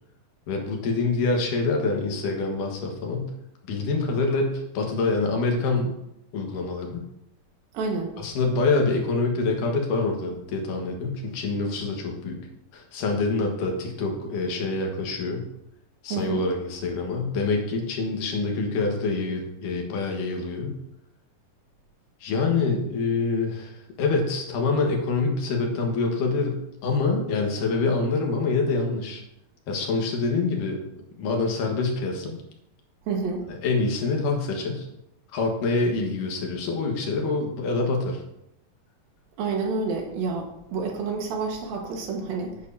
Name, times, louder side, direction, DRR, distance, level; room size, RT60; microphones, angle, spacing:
voice 1, 0.5-3.3 3.7-5.9 6.3-7.0 8.2-12.4 12.7-15.4 16.0-20.8 22.2-26.6 26.8-29.2 29.7-30.8 31.2-32.4 33.6-34.9 35.3-38.2, left 3 dB, 70° left, 1 dB, 2.9 m, -26 dB
voice 2, 7.7-8.2 16.1-16.4 33.1-33.5 39.4-42.7, right 4 dB, 85° right, 1 dB, 3.3 m, -29 dB
10.0 x 9.2 x 2.8 m, 0.83 s
omnidirectional pair, 4.0 m